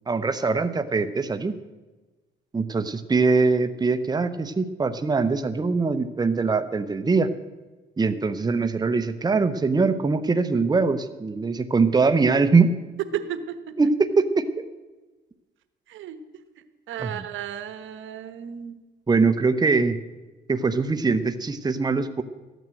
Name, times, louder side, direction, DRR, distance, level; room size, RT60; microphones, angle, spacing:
voice 1, 0.1-1.5 2.5-7.3 8.0-12.7 13.8-14.5 17.0-17.2 19.1-20.0 20.5-22.2, right 4 dB, 20° right, 9 dB, 0.8 m, -22 dB
voice 2, 13.1-13.7 15.9-16.2 16.9-18.8, right 9 dB, 80° right, 11 dB, 1.1 m, -33 dB
13.5 x 9.3 x 7.7 m, 1.2 s
cardioid pair, 90°, 20 cm